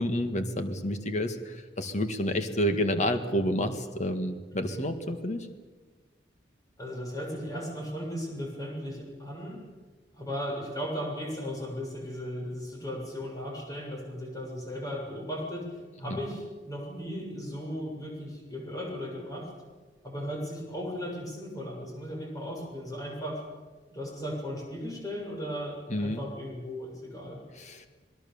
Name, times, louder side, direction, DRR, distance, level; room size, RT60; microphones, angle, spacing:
voice 1, 0.0-5.5 16.0-16.2 25.9-26.2 27.5-27.9, equal, 40° left, 7 dB, 1.9 m, -29 dB
voice 2, 4.5-4.9 6.8-9.6 10.2-15.7 16.0-19.5 20.0-23.4 23.9-27.4, equal, 20° left, 0 dB, 7.4 m, -36 dB
27.5 x 20.5 x 7.2 m, 1.3 s
head